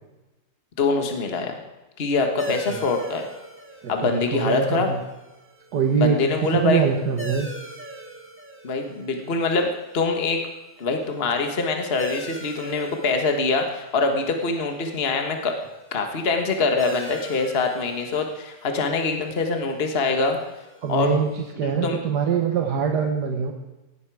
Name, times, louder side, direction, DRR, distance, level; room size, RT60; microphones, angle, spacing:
voice 1, 0.8-1.6 2.0-3.3 3.9-4.9 6.0-6.8 8.6-10.4 10.8-15.6 15.9-20.4 20.9-21.1 21.6-22.0, left 3 dB, 35° left, 4 dB, 1.6 m, -24 dB
sound 1, 2.4-21.5, right 1 dB, 5° right, 1.6 m, -41 dB
voice 2, 4.0-5.0 5.7-7.5 20.8-23.5, right 6 dB, 65° right, 3 dB, 1.8 m, -23 dB
17.0 x 16.5 x 4.8 m, 1.1 s
omnidirectional pair, 2.0 m